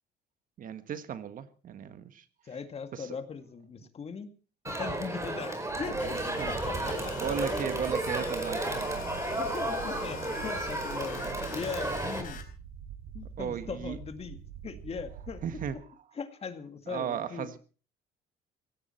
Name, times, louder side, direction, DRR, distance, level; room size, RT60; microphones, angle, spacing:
voice 1, 0.6-2.2 2.9-3.2 6.4-6.5 7.2-9.0 13.4-14.0 15.4-15.8 16.9-17.6, right 8 dB, 55° right, 11 dB, 1.6 m, -35 dB
voice 2, 2.4-4.3 4.7-6.2 6.5-7.2 9.4-12.4 13.1-15.8 16.2-17.5, left 5 dB, 35° left, 9 dB, 2.0 m, -40 dB
Crowd, 4.6-12.2, right 2 dB, 15° right, 4.7 m, -33 dB
sound 1, 5.7-15.7, right 8 dB, 70° right, 6.9 m, -45 dB
sound 2, 6.0-12.4, left 7 dB, 55° left, 4.2 m, -44 dB
17.0 x 16.5 x 4.4 m, 0.38 s
cardioid pair, 110°, 17 cm